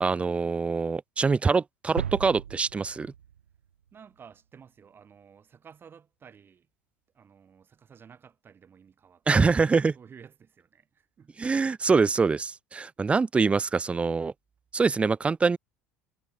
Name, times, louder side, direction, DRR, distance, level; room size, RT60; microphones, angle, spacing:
voice 1, 0.0-3.1 9.3-9.9 11.4-14.3 14.7-15.6, right 4 dB, 20° right, 0.4 m, -24 dB
sound 1, 2.0-4.0, right 9 dB, 85° right, 0.5 m, -36 dB
voice 2, 3.9-6.7 7.1-11.4, right 7 dB, 35° right, 4.6 m, -53 dB
hypercardioid pair, 70°, 7 cm